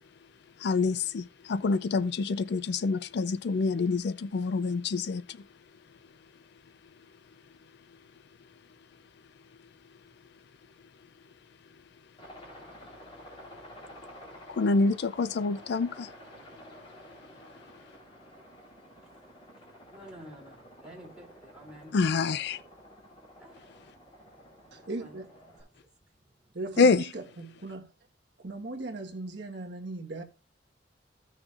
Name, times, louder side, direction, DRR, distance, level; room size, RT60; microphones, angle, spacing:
voice 1, 0.6-5.4 14.5-16.1 21.9-22.6 26.8-27.0, left 4 dB, 65° left, 0.4 m, -26 dB
Aircraft, 12.2-25.6, equal, 30° left, 3.8 m, -51 dB
voice 2, 18.9-22.4 22.8-25.2 25.6-26.6, equal, 5° right, 3.4 m, -54 dB
voice 3, 24.7-25.2 26.5-27.9 28.4-30.2, right 2 dB, 65° right, 1.4 m, -38 dB
15.0 x 6.2 x 2.5 m
head